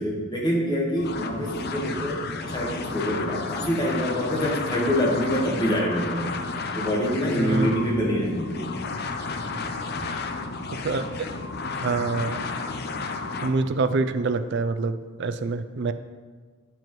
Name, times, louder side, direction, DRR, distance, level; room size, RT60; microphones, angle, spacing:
voice 1, 0.0-6.3 6.7-8.6, equal, 20° left, -2 dB, 1.4 m, -26 dB
sound 1, 1.0-13.5, left 4 dB, 50° left, 0.5 m, -32 dB
voice 2, 7.3-7.7 9.5-9.6 10.8-11.0 11.8-12.5 13.4-15.9, right 3 dB, 55° right, 11 dB, 0.4 m, -26 dB
9.2 x 7.5 x 3.1 m, 1.5 s
head